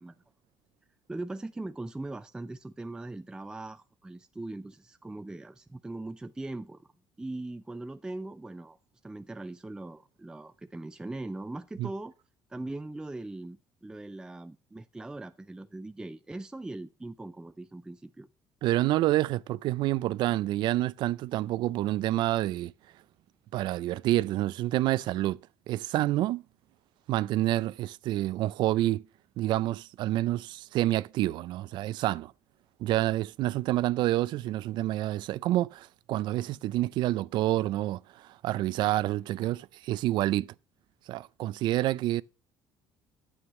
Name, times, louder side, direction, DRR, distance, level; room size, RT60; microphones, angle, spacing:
voice 1, 1.1-6.9 7.2-8.8 9.0-12.1 12.5-18.3, right 2 dB, 10° right, 0.4 m, -40 dB
voice 2, 18.6-22.7 23.5-25.4 25.7-26.4 27.1-29.0 29.4-32.3 32.8-40.5 41.1-42.2, right 15 dB, 70° right, 0.4 m, -28 dB
9.8 x 8.9 x 3.0 m
cardioid pair, 115°, 8 cm